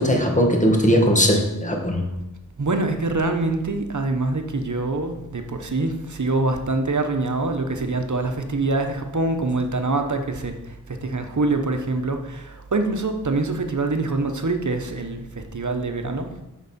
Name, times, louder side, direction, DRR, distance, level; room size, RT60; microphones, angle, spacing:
voice 1, 0.0-2.0, equal, 20° left, 2 dB, 1.4 m, -19 dB
voice 2, 2.6-16.4, right 2 dB, 55° right, 5 dB, 1.0 m, -25 dB
8.2 x 6.2 x 4.2 m, 0.92 s
wide cardioid pair, 60°, 35 cm